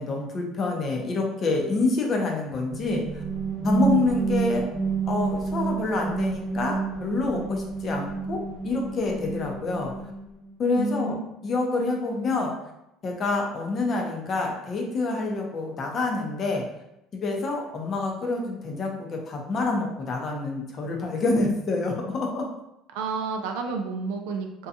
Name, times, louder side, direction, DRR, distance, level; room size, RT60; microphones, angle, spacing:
voice 1, 0.0-3.2 3.6-4.7 5.1-9.9 10.6-11.1 11.4-12.5 13.0-16.6 17.1-22.4, left 3 dB, 35° left, 1 dB, 0.6 m, -27 dB
sound 1, 2.7-10.5, right 5 dB, 35° right, 0.9 m, -29 dB
voice 2, 10.8-11.2 22.9-24.7, right 4 dB, 85° right, 4 dB, 0.4 m, -30 dB
2.7 x 2.2 x 2.5 m, 0.85 s
cardioid pair, 125°, 0 cm